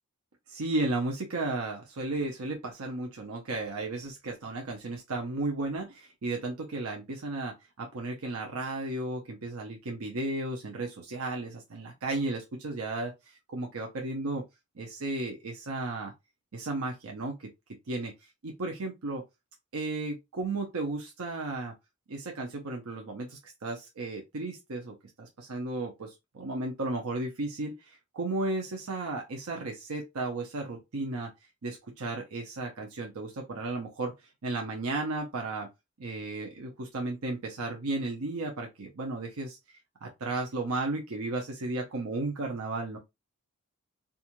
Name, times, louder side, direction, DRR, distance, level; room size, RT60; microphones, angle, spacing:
voice 1, 0.5-14.4 14.8-16.1 16.5-17.5 17.9-18.1 18.4-19.2 19.7-21.7 22.1-31.3 31.6-34.1 34.4-35.7 36.0-39.6 40.0-43.0, right 2 dB, 80° right, 0.6 m, -34 dB
2.6 x 2.4 x 2.8 m
head